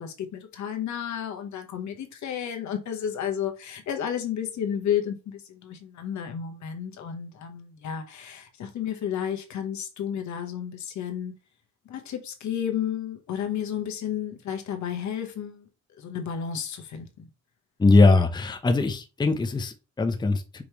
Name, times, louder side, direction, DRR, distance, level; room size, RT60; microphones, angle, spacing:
voice 1, 0.0-11.3 11.8-15.7 16.0-17.3, left 9 dB, 70° left, 1.2 m, -32 dB
voice 2, 17.8-20.6, left 3 dB, 15° left, 0.6 m, -21 dB
5.2 x 3.2 x 3.0 m
cardioid pair, 90°, 30 cm